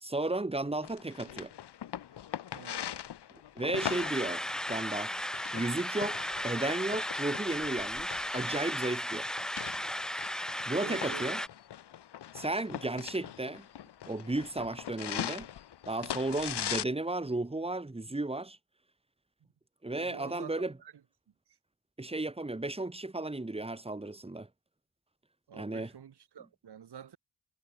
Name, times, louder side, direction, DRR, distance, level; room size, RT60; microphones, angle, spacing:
voice 1, 0.0-1.5 3.5-5.1 5.5-9.3 10.6-11.4 12.3-13.7 14.1-15.5 15.9-18.6 19.8-20.7 22.0-24.5 25.5-25.9, right 2 dB, 15° right, 3.2 m, -34 dB
sound 1, 0.8-16.8, left 10 dB, 85° left, 1.5 m, -41 dB
voice 2, 2.5-2.9 10.8-11.5 20.0-20.9 25.5-27.2, right 8 dB, 80° right, 4.4 m, -47 dB
sound 2, 3.7-11.5, equal, ahead, 0.5 m, -35 dB
wide cardioid pair, 125°, 39 cm